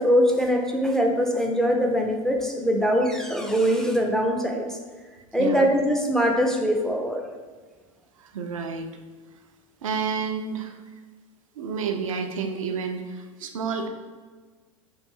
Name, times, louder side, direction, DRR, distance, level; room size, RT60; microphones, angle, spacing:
voice 1, 0.0-4.8 5.3-7.2, equal, 5° left, 1 dB, 0.4 m, -22 dB
voice 2, 8.2-8.9 9.8-10.7 11.6-13.9, right 5 dB, 75° right, 5 dB, 0.4 m, -30 dB
3.1 x 2.5 x 3.5 m, 1.4 s
hypercardioid pair, 90°, 17 cm